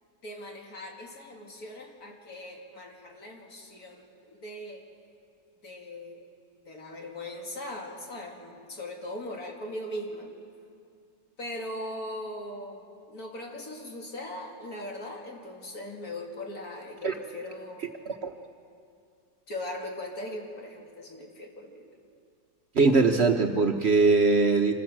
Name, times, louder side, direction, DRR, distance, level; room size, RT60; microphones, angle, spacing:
voice 1, 0.2-4.8 5.6-6.3 6.7-10.3 11.4-17.8 19.5-21.9, left 1 dB, 65° left, 0 dB, 2.8 m, -39 dB
voice 2, 22.7-24.7, right 3 dB, 45° right, 4 dB, 1.2 m, -21 dB
26.0 x 15.5 x 7.4 m, 2.4 s
omnidirectional pair, 1.7 m